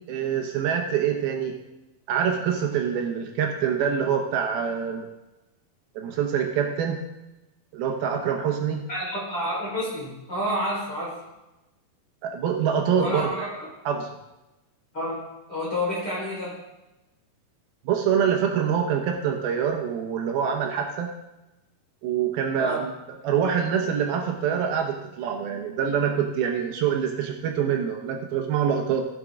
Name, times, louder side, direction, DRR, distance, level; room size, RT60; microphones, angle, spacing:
voice 1, 0.1-1.5 2.1-5.1 6.0-7.0 7.7-8.8 12.2-13.3 13.9-14.1 17.9-21.1 22.0-29.0, right 8 dB, 80° right, 3 dB, 2.8 m, -25 dB
voice 2, 8.9-11.2 12.9-13.7 14.9-16.6 22.5-22.9, equal, 25° left, -6 dB, 4.8 m, -29 dB
15.5 x 7.5 x 3.8 m, 0.98 s
omnidirectional pair, 4.4 m